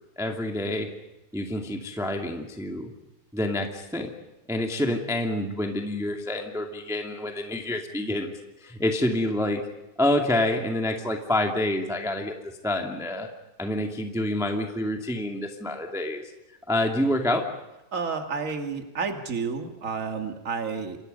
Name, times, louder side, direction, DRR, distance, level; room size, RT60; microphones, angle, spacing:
voice 1, 0.1-0.9 1.3-2.9 3.3-4.1 4.5-8.3 8.6-9.6 10.0-13.3 13.6-16.2 16.7-17.4, left 1 dB, ahead, 2 dB, 1.0 m, -27 dB
voice 2, 17.9-21.0, right 5 dB, 25° right, 4 dB, 1.9 m, -30 dB
29.5 x 25.5 x 5.5 m, 0.97 s
omnidirectional pair, 4.6 m